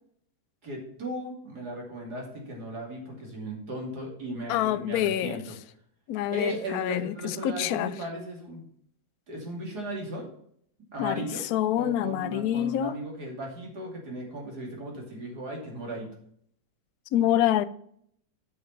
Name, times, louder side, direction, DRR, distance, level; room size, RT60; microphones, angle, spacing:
voice 1, 0.6-5.5 6.3-8.6 9.3-10.3 10.9-11.4 11.7-16.1, right 1 dB, 60° right, 3.1 m, -36 dB
voice 2, 4.5-5.4 6.1-7.9 11.0-12.9 17.1-17.6, left 12 dB, 70° left, 0.9 m, -26 dB
7.6 x 6.7 x 5.7 m
omnidirectional pair, 2.0 m